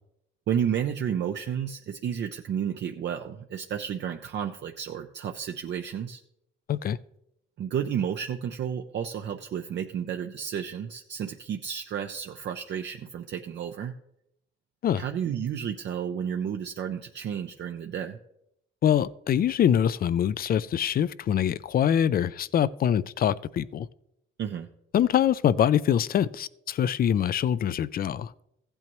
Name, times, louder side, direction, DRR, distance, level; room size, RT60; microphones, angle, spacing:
voice 1, 0.5-6.2 7.6-13.9 14.9-18.2 24.4-24.7, right 8 dB, 60° right, 0.6 m, -31 dB
voice 2, 18.8-23.9 24.9-28.3, left 9 dB, 50° left, 0.4 m, -24 dB
15.0 x 8.8 x 3.1 m
cardioid pair, 90°, 20 cm